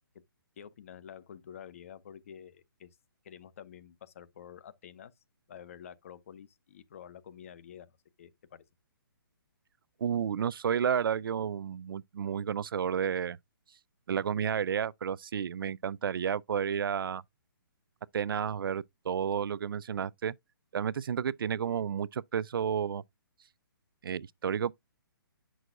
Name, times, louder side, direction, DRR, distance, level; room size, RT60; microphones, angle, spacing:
voice 1, 0.6-2.9 3.2-5.1 5.5-8.6, left 9 dB, 35° left, 0.6 m, -49 dB
voice 2, 10.0-13.4 14.1-17.2 18.1-20.3 20.7-23.0 24.0-24.7, right 8 dB, 70° right, 0.4 m, -31 dB
8.0 x 6.1 x 2.5 m
hypercardioid pair, 170°, 12 cm